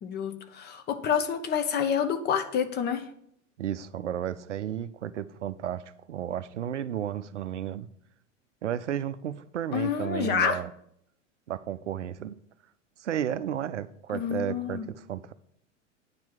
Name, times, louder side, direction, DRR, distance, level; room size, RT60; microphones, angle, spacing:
voice 1, 0.0-3.1 9.7-10.6 14.1-14.9, left 7 dB, 25° left, 0.9 m, -28 dB
voice 2, 3.6-7.9 8.6-10.7 11.5-12.4 13.0-15.3, right 10 dB, 70° right, 0.5 m, -33 dB
9.7 x 4.4 x 7.2 m
figure-of-eight pair, 85°, 38 cm